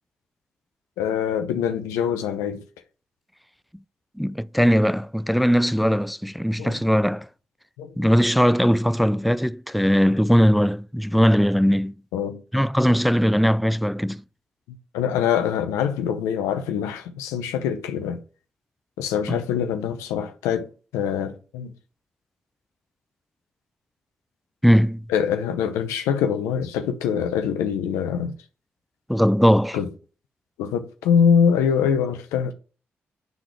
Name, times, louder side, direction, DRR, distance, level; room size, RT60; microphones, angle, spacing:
voice 1, 1.0-2.6 6.6-6.8 7.8-8.0 12.1-12.4 14.7-18.2 19.0-21.7 25.1-28.3 29.7-29.9 30.6-32.5, left 7 dB, 90° left, 0.7 m, -24 dB
voice 2, 4.2-7.3 8.0-11.9 12.5-14.2 19.3-19.4 24.6-25.1 29.1-29.8, equal, ahead, 0.4 m, -19 dB
10.5 x 3.9 x 3.3 m
supercardioid pair, 45°, 5 cm